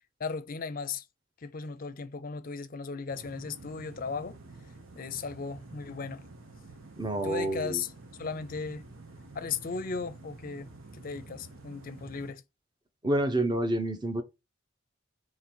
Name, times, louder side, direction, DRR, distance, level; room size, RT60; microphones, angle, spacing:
voice 1, 0.2-1.0 1.4-4.4 5.0-6.3 7.2-7.9 8.2-8.9 9.3-10.7 10.9-12.4, left 5 dB, 45° left, 0.5 m, -36 dB
sound 1, 3.1-12.3, right 3 dB, 80° right, 1.0 m, -49 dB
voice 2, 7.0-7.8 13.0-14.2, right 1 dB, 20° right, 0.8 m, -28 dB
3.9 x 3.0 x 4.4 m
head